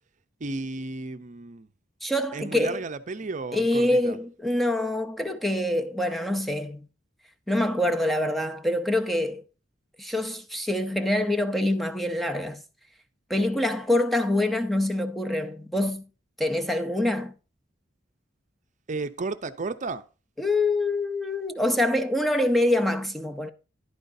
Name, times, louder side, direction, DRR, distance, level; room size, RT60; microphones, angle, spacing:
voice 1, 0.4-1.7 2.3-4.2 18.9-20.0, right 3 dB, 40° right, 0.6 m, -33 dB
voice 2, 2.0-2.8 3.5-6.9 7.5-9.4 10.0-12.6 13.3-16.0 16.4-17.3 20.4-23.5, left 1 dB, ahead, 0.5 m, -25 dB
11.0 x 9.4 x 2.6 m
head